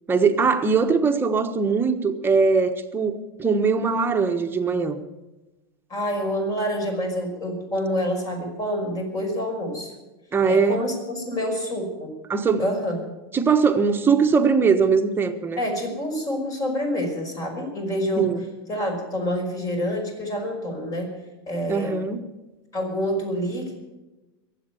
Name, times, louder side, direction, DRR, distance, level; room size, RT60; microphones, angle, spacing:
voice 1, 0.1-5.0 10.3-10.9 12.3-12.7 13.3-15.6 18.2-18.4 21.7-22.2, right 5 dB, 15° right, 1.3 m, -21 dB
voice 2, 5.9-9.9 10.4-12.2 12.6-13.1 15.6-18.4 18.7-21.1 21.5-22.0 22.7-23.8, equal, 30° left, 5.6 m, -27 dB
22.0 x 8.2 x 7.0 m
supercardioid pair, 125°, 12 cm